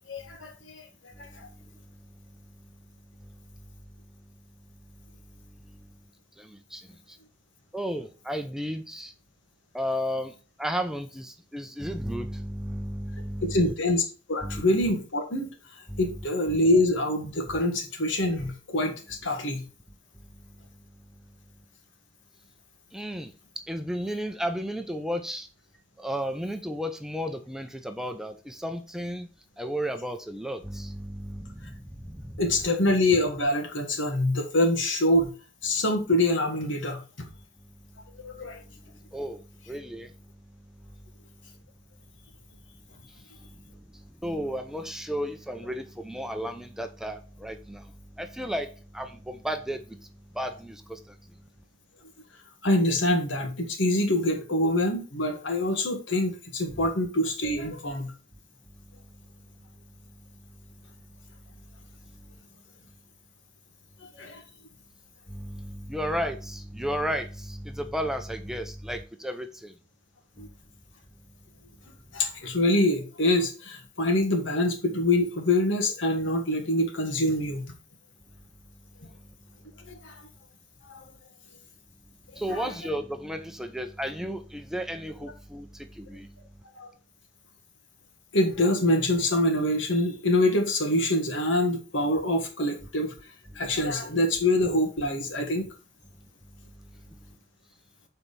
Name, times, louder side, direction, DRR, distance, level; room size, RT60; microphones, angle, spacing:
voice 1, 0.1-0.8 1.2-1.5 13.4-14.0 14.3-15.5 16.0-19.6 32.4-35.3 35.6-37.3 38.2-38.6 52.6-58.1 64.2-64.4 70.4-70.5 72.1-77.6 79.9-80.1 80.9-81.0 82.5-82.6 86.8-86.9 88.3-93.1 93.5-95.7, left 1 dB, 80° left, 1.6 m, -25 dB
voice 2, 6.4-6.8 7.7-9.1 9.7-10.3 10.6-13.8 14.4-14.6 15.9-16.0 18.4-18.5 22.9-23.3 23.7-25.5 26.0-29.3 29.6-31.7 32.1-32.4 39.1-39.4 39.7-40.1 44.2-47.8 48.2-48.7 48.9-50.0 50.4-51.0 56.7-56.9 65.3-69.7 82.4-85.7 86.0-86.3, equal, 5° right, 0.6 m, -33 dB
7.1 x 4.5 x 4.1 m
head